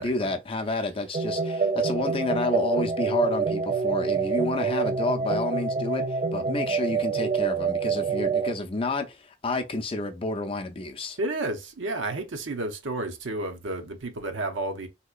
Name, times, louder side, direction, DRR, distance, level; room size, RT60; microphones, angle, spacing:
voice 1, 0.0-11.2, left 2 dB, 30° left, 0.4 m, -30 dB
sound 1, 1.1-8.5, right 5 dB, 35° right, 0.3 m, -26 dB
voice 2, 11.2-14.9, right 2 dB, 90° right, 0.7 m, -31 dB
3.7 x 2.8 x 2.4 m
head